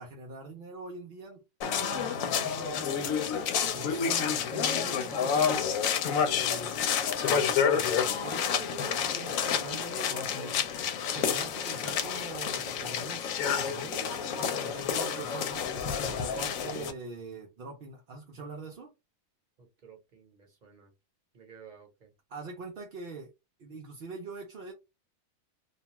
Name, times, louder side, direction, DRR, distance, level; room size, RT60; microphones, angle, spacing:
voice 1, 0.0-1.4 1.8-3.2 3.7-6.8 7.7-7.9 8.2-10.6 11.1-14.2 14.5-18.9 22.3-23.3 23.6-24.7, right 3 dB, 55° right, 0.6 m, -43 dB
sound 1, 1.6-16.9, left 7 dB, 75° left, 1.0 m, -29 dB
voice 2, 3.6-3.9 19.6-20.9 21.3-22.1, right 5 dB, 40° right, 0.9 m, -53 dB
2.5 x 2.3 x 2.9 m
omnidirectional pair, 1.4 m